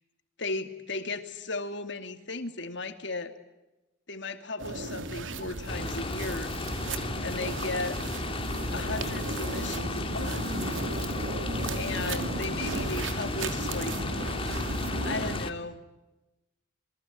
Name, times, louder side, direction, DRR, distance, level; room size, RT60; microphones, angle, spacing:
voice 1, 0.4-3.3 4.1-6.5 7.2-8.0 8.7-10.5 11.7-14.1 15.0-15.8, left 3 dB, 65° left, 8 dB, 2.7 m, -36 dB
sound 1, 4.6-15.4, right 2 dB, 85° right, 2.7 m, -35 dB
sound 2, 5.7-15.5, left 2 dB, 30° left, 2.0 m, -34 dB
28.5 x 23.0 x 8.6 m, 1.0 s
head